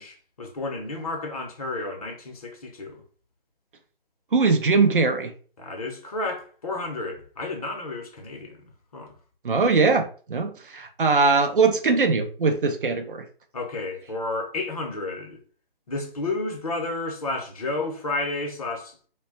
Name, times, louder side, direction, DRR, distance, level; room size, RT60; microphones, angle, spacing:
voice 1, 0.0-3.0 5.6-8.6 8.9-9.1 13.5-15.4 15.9-19.0, left 2 dB, 40° left, 0.7 m, -31 dB
voice 2, 4.3-5.3 9.4-13.3, right 4 dB, 65° right, 0.6 m, -21 dB
2.2 x 2.1 x 3.7 m
figure-of-eight pair, 150°, 29 cm